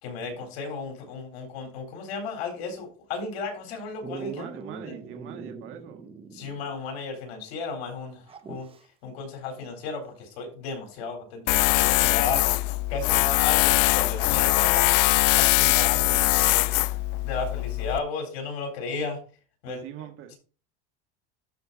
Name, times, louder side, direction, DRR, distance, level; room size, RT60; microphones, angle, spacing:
voice 1, 0.0-4.5 6.3-8.7 9.0-12.5 12.9-14.9 15.3-16.7 17.2-19.2 19.6-19.8, left 4 dB, 75° left, 4.1 m, -34 dB
Dog, 4.0-6.8 7.1-7.2 8.3-8.9 10.9-11.0, right 5 dB, 15° right, 0.8 m, -41 dB
voice 2, 4.2-6.0 13.1-13.2 19.7-20.3, right 9 dB, 40° right, 1.7 m, -42 dB
Tools, 11.5-18.0, left 21 dB, 60° left, 0.4 m, -22 dB
12.0 x 4.5 x 4.1 m
supercardioid pair, 145°, 32 cm